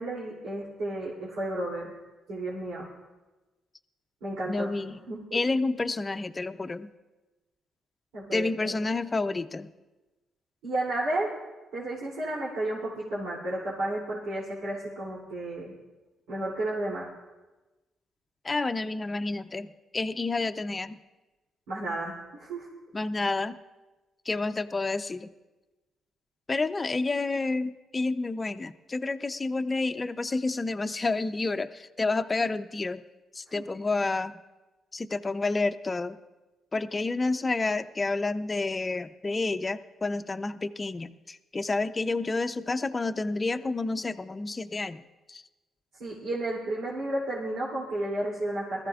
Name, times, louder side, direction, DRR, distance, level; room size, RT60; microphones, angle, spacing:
voice 1, 0.0-1.9 2.3-2.9 4.2-5.4 8.1-8.8 10.6-11.3 11.7-15.7 16.3-17.1 21.7-22.7 33.6-33.7 46.0-48.9, right 1 dB, 90° right, -7 dB, 2.8 m, -32 dB
voice 2, 4.5-5.0 5.3-6.9 8.3-9.7 18.4-21.0 22.9-23.6 24.3-25.3 26.5-33.0 33.3-34.4 34.9-36.2 36.7-45.0 45.3-45.4, left 3 dB, 25° left, 9 dB, 0.5 m, -29 dB
20.0 x 14.0 x 2.4 m, 1.1 s
cardioid pair, 90°, 0 cm